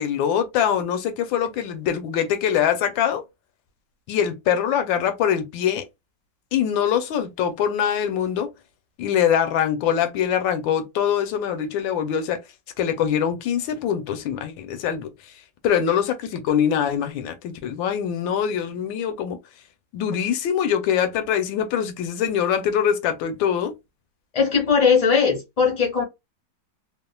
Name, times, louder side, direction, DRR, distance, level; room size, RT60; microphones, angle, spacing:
voice 1, 0.0-3.2 4.1-5.9 6.5-8.5 9.0-12.4 12.8-15.1 15.6-19.4 19.9-23.7, left 9 dB, 85° left, 1.3 m, -23 dB
voice 2, 24.3-26.0, left 6 dB, 35° left, 0.5 m, -19 dB
3.1 x 2.3 x 2.2 m
omnidirectional pair, 2.1 m